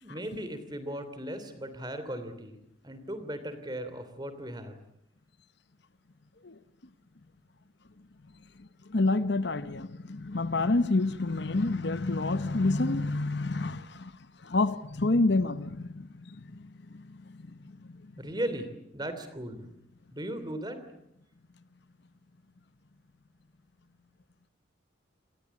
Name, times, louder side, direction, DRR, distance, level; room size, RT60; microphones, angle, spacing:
voice 1, 0.0-2.6 2.8-4.8 18.2-19.7 20.1-20.8, right 1 dB, 20° right, 3.1 m, -37 dB
voice 2, 8.6-14.1 14.4-18.1, left 2 dB, 60° left, 0.9 m, -29 dB
28.0 x 19.5 x 8.4 m
head